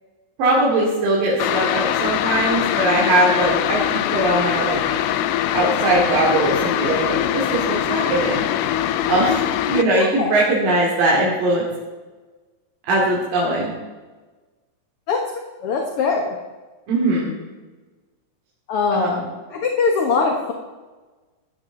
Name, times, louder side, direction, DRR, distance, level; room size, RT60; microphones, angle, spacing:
voice 1, 0.4-4.8 5.5-8.4 9.1-9.4 9.7-11.6 12.9-13.7 16.9-17.3 18.9-19.2, right 2 dB, 75° right, -5 dB, 4.3 m, -20 dB
sound 1, 1.4-9.8, left 11 dB, 80° left, 2.2 m, -22 dB
voice 2, 9.9-10.4 15.1-15.2 15.6-16.4 18.7-19.3 19.5-20.5, left 4 dB, 55° left, 2 dB, 1.9 m, -21 dB
15.5 x 14.0 x 4.0 m, 1.3 s
omnidirectional pair, 3.9 m